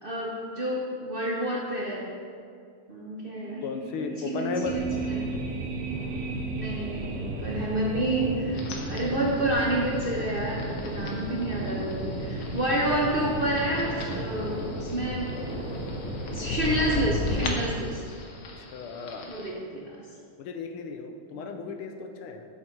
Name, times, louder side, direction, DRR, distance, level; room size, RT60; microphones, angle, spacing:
voice 1, 0.0-2.1 2.9-3.6 4.3-4.8 5.1-5.3 6.6-8.6 8.9-15.4 16.3-18.0 19.3-20.1 21.3-21.5, right 1 dB, 80° right, -3 dB, 0.5 m, -29 dB
sound 1, 3.3-8.6 8.9-9.0, right 5 dB, 60° right, 1.5 m, -37 dB
voice 2, 3.6-4.8 18.6-19.2 20.4-22.5, left 5 dB, 85° left, 6 dB, 1.6 m, -34 dB
sound 2, 4.6-17.6, right 1 dB, 5° right, 2.0 m, -34 dB
sound 3, 8.5-19.5, left 3 dB, 60° left, 1.5 m, -38 dB
8.4 x 7.6 x 4.5 m, 2.4 s
omnidirectional pair, 2.4 m